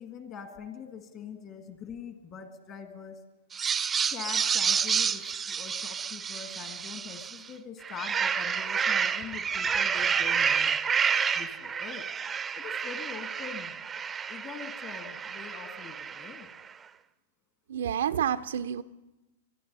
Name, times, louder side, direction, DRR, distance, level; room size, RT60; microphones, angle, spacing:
voice 1, 0.0-3.2 4.0-10.8 11.3-12.1 12.5-13.8 14.3-16.5, left 7 dB, 35° left, 7 dB, 2.0 m, -43 dB
sound 1, 3.5-7.4 7.8-16.5, right 7 dB, 20° right, 0.5 m, -29 dB
voice 2, 17.7-18.8, right 9 dB, 70° right, 12 dB, 0.5 m, -29 dB
24.0 x 10.0 x 5.4 m, 1.1 s
hypercardioid pair, 110°, 0 cm